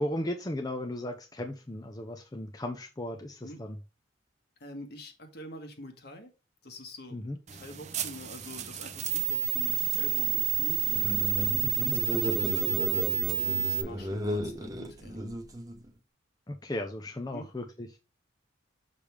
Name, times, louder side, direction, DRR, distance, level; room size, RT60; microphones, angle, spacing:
voice 1, 0.0-3.8 7.1-7.4 11.6-11.9 16.5-18.0, left 1 dB, 20° left, 0.6 m, -36 dB
voice 2, 4.6-6.3 6.6-15.2 17.3-17.5, left 1 dB, 60° left, 1.6 m, -46 dB
sound 1, 7.5-13.8, right 10 dB, 35° right, 0.6 m, -29 dB
sound 2, 10.8-15.9, equal, 20° right, 0.9 m, -35 dB
6.6 x 5.3 x 3.4 m
head